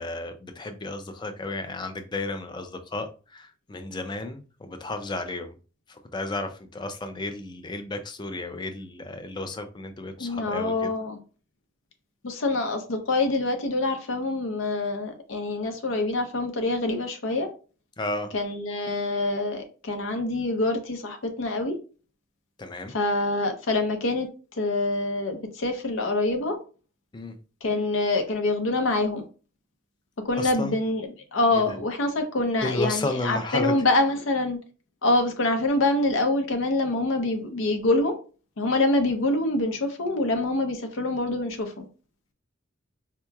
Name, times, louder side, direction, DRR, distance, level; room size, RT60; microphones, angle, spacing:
voice 1, 0.0-5.6 5.9-10.9 18.0-18.3 22.6-22.9 27.1-27.4 30.4-30.8 31.6-31.8 32.6-33.8, left 2 dB, 20° left, 0.4 m, -33 dB
voice 2, 10.2-11.2 12.2-17.5 18.3-21.7 22.9-26.6 27.6-29.2 30.3-34.6 35.0-38.2 38.6-41.9, left 2 dB, 75° left, 0.6 m, -25 dB
4.4 x 2.8 x 2.3 m
head